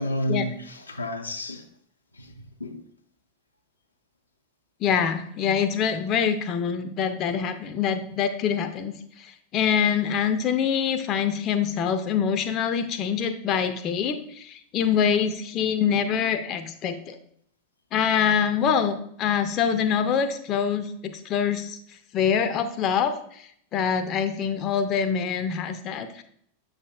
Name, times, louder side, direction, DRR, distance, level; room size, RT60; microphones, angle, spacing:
voice 1, 0.0-1.7 2.1-2.9, equal, 80° left, 0.6 m, -31 dB
voice 2, 4.8-17.2 17.9-21.8 22.1-26.2, left 7 dB, 35° left, 0.5 m, -25 dB
7.1 x 6.5 x 2.3 m
figure-of-eight pair, 90°, 0 cm